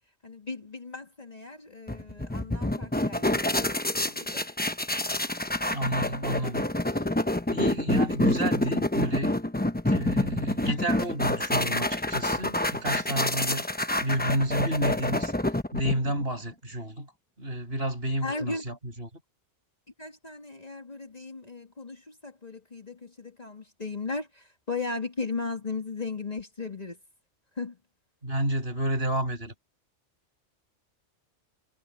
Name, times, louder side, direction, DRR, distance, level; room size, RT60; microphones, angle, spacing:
voice 1, 0.2-4.4 18.2-18.6 20.0-27.0 27.6-27.8, left 3 dB, 35° left, 2.3 m, -36 dB
sound 1, 1.9-16.2, left 1 dB, 10° left, 0.8 m, -27 dB
voice 2, 5.7-6.6 7.5-9.3 9.9-13.6 14.0-15.3 15.7-17.1 17.4-19.1 28.2-29.5, right 1 dB, 60° right, 7.6 m, -30 dB
omnidirectional pair, 1.2 m